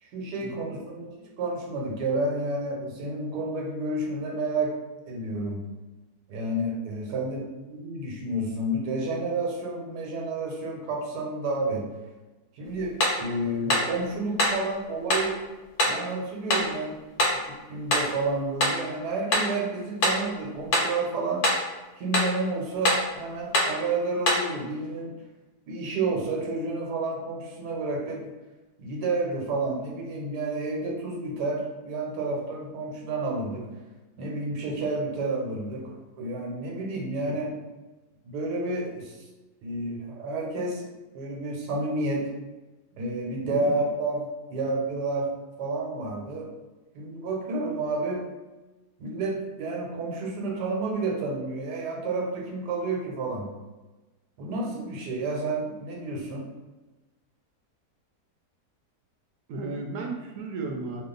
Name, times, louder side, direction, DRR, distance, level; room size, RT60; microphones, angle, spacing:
voice 1, 0.0-4.8 5.1-5.6 6.3-11.9 12.5-15.4 15.8-17.0 17.4-21.4 22.0-25.1 25.7-28.2 28.8-33.7 34.2-37.5 38.2-39.3 39.6-40.9 41.1-42.3 43.0-45.3 45.6-46.5 46.9-48.2 49.0-53.5 54.4-56.5, right 2 dB, 90° right, -1 dB, 1.3 m, -30 dB
sound 1, 13.0-13.2 13.7-13.9 14.4-14.6 15.1-15.3 15.8-16.0 16.5-16.7 17.2-17.4 17.9-18.1 18.6-18.8 19.3-19.5 20.0-20.3 20.7-20.9 21.4-21.7 22.1-22.3 22.8-23.1 23.5-23.8 24.3-24.5, left 1 dB, 75° left, 1.3 m, -24 dB
voice 2, 43.4-43.8 59.5-61.0, right 3 dB, 70° right, 1 dB, 1.0 m, -35 dB
2.9 x 2.3 x 3.7 m, 1.2 s
omnidirectional pair, 1.7 m